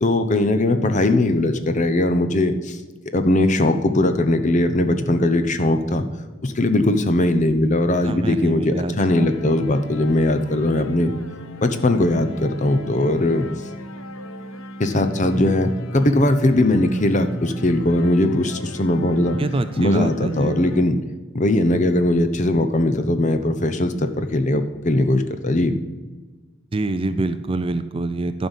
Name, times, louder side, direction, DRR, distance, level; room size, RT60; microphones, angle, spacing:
voice 1, 0.0-2.8 3.1-6.1 6.4-11.1 11.6-13.5 14.8-19.4 19.8-21.0 21.3-25.8, left 1 dB, 35° left, 8 dB, 0.7 m, -19 dB
voice 2, 8.0-9.3 19.4-20.5 26.7-28.5, right 2 dB, 25° right, 11 dB, 0.4 m, -25 dB
sound 1, 9.0-20.8, left 1 dB, 75° left, 1.1 m, -35 dB
11.0 x 5.3 x 7.2 m, 1.3 s
head